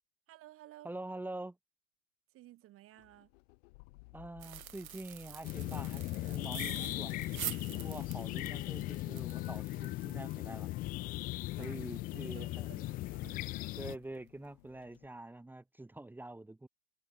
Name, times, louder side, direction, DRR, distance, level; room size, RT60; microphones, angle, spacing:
voice 1, 0.3-0.9 2.3-3.3 11.6-11.7 12.3-13.5, right 15 dB, 30° right, 5.7 m, -55 dB
voice 2, 0.8-1.6 4.1-7.1 7.7-10.7 11.6-12.7 13.8-16.7, right 2 dB, 5° right, 4.3 m, -46 dB
sound 1, 3.0-15.1, left 29 dB, 45° left, 2.9 m, -56 dB
sound 2, 4.4-12.2 12.5-12.6 13.1-13.3 13.6-13.8, right 13 dB, 70° right, 1.5 m, -47 dB
sound 3, 5.4-14.0, left 18 dB, 20° left, 0.6 m, -38 dB
hypercardioid pair, 130°, 44 cm